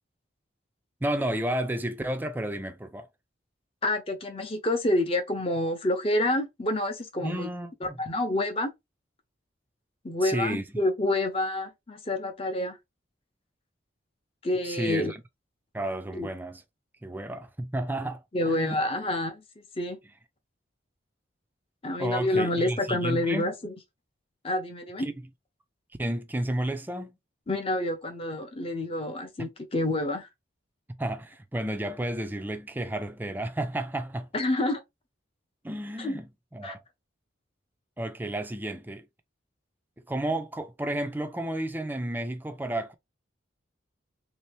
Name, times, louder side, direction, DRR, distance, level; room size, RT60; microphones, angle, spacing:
voice 1, 1.0-3.1 7.2-8.0 10.2-10.8 14.6-15.2 15.7-16.6 17.0-18.2 18.5-18.8 22.0-23.5 25.0-25.2 26.0-27.2 30.9-34.3 35.6-36.3 36.5-36.8 38.0-39.1 40.1-42.9, right 1 dB, 10° right, 0.4 m, -32 dB
voice 2, 3.8-7.5 7.8-8.7 10.0-12.8 14.4-15.1 16.1-16.3 18.3-19.4 19.8-20.0 21.8-23.7 24.4-25.1 27.5-30.3 34.3-34.8 36.0-36.2 36.6-36.7, left 1 dB, 30° left, 0.7 m, -28 dB
3.3 x 2.8 x 3.1 m
head